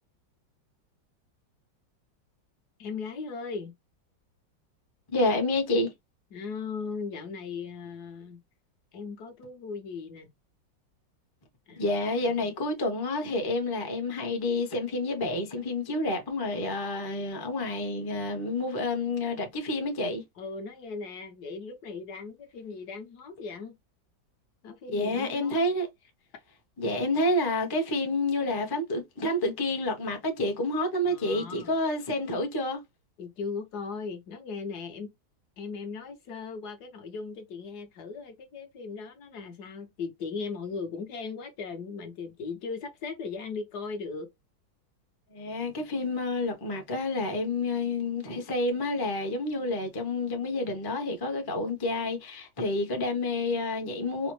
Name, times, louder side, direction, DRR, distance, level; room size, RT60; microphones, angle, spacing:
voice 1, 2.8-3.7 6.3-8.4 8.9-10.3 11.7-12.5 20.4-23.7 24.6-25.6 31.1-31.7 33.2-35.1 35.6-44.3, left 4 dB, 65° left, 1.2 m, -38 dB
voice 2, 5.1-5.9 11.8-20.2 24.9-25.9 26.8-32.8 45.3-54.3, left 2 dB, 25° left, 0.4 m, -29 dB
4.8 x 2.0 x 3.0 m
omnidirectional pair, 2.0 m